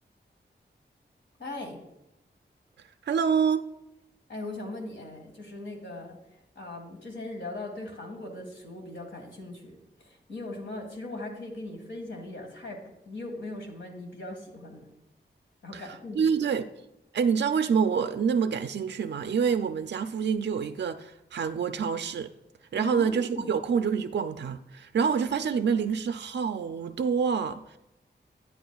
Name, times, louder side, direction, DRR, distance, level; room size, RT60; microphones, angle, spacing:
voice 1, 1.4-1.8 4.3-6.2 6.6-14.9 15.6-16.3 22.7-23.5, left 2 dB, 80° left, 1 dB, 1.8 m, -39 dB
voice 2, 2.8-3.6 15.7-16.7 17.1-22.3 22.7-27.8, right 6 dB, 70° right, 9 dB, 0.4 m, -27 dB
11.0 x 9.3 x 2.3 m, 0.90 s
wide cardioid pair, 70°, 19 cm